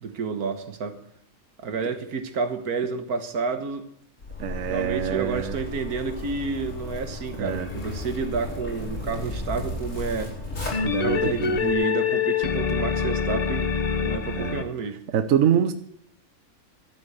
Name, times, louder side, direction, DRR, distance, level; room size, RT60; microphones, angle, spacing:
voice 1, 0.0-1.0 1.6-3.9 4.6-10.3 11.0-13.7 14.0-15.0, right 5 dB, 80° right, 9 dB, 1.8 m, -30 dB
Zipper (clothing), 4.2-11.7, left 2 dB, 55° left, 4.9 m, -35 dB
voice 2, 4.4-5.6 7.4-7.7 10.8-11.6 14.4-14.6 15.1-15.7, right 9 dB, 65° right, 9 dB, 1.2 m, -25 dB
sound 1, 7.6-8.9 10.7-14.6, left 6 dB, 35° left, 0.7 m, -26 dB
12.0 x 9.0 x 8.1 m, 0.68 s
omnidirectional pair, 1.6 m